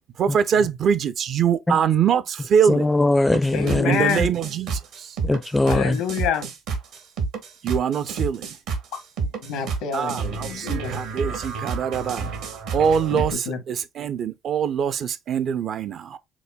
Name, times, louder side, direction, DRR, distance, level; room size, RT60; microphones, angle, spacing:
voice 1, 0.2-2.9 3.8-5.2 7.6-8.6 9.9-12.3 12.7-16.2, right 7 dB, 55° right, 0.5 m, -23 dB
voice 2, 2.7-4.0 5.2-6.0, left 2 dB, 10° left, 0.4 m, -20 dB
sound 1, 3.3-13.3, right 4 dB, 70° right, 1.2 m, -29 dB
voice 3, 3.5-4.3 5.7-6.5 8.9-9.0 9.4-10.9 13.1-13.6, left 8 dB, 75° left, 1.0 m, -27 dB
6.1 x 2.2 x 2.2 m
hypercardioid pair, 65°, 0 cm